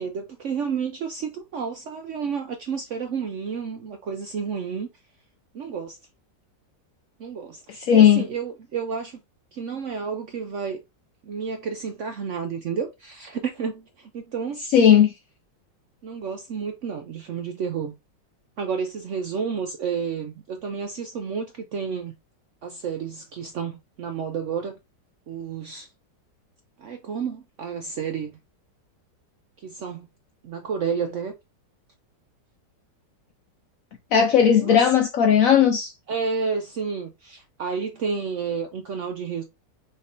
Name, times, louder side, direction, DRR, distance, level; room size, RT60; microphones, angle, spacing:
voice 1, 0.0-4.9 5.5-6.0 7.2-9.2 9.5-10.8 11.2-14.6 16.0-17.9 18.6-22.1 22.6-24.8 25.3-25.9 26.8-28.4 29.6-30.1 30.4-31.4 34.6-34.9 36.1-39.4, right 6 dB, 75° right, 0.7 m, -31 dB
voice 2, 7.9-8.2 14.7-15.1 34.1-35.9, left 8 dB, 70° left, 0.8 m, -16 dB
5.7 x 3.3 x 2.5 m
omnidirectional pair, 1.9 m